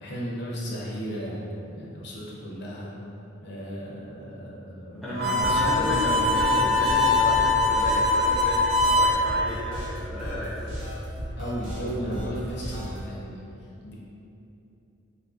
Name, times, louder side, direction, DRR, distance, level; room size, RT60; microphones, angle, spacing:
voice 1, 0.0-2.9 3.4-6.5 11.4-13.4 13.8-13.9, equal, 50° left, -5 dB, 0.6 m, -35 dB
voice 2, 5.0-10.5, left 1 dB, ahead, -10 dB, 0.5 m, -32 dB
Harmonica, 5.1-9.2, left 2 dB, 50° right, 0.5 m, -22 dB
sound 1, 5.4-13.0, equal, 70° right, 0.9 m, -35 dB
2.7 x 2.5 x 3.6 m, 2.8 s
head